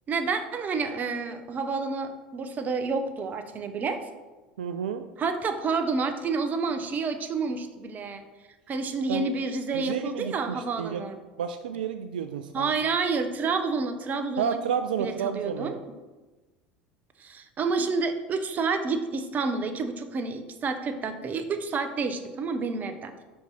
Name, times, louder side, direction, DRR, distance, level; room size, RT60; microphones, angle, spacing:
voice 1, 0.1-4.0 5.2-8.2 8.7-11.2 12.5-14.6 15.0-15.8 17.2-23.2, right 4 dB, 35° right, 8 dB, 0.8 m, -29 dB
voice 2, 4.6-5.0 9.1-9.3 9.7-11.0 11.4-12.7 14.4-15.8, right 8 dB, 75° right, 8 dB, 0.3 m, -31 dB
5.2 x 4.6 x 5.6 m, 1.2 s
figure-of-eight pair, 70°, 5 cm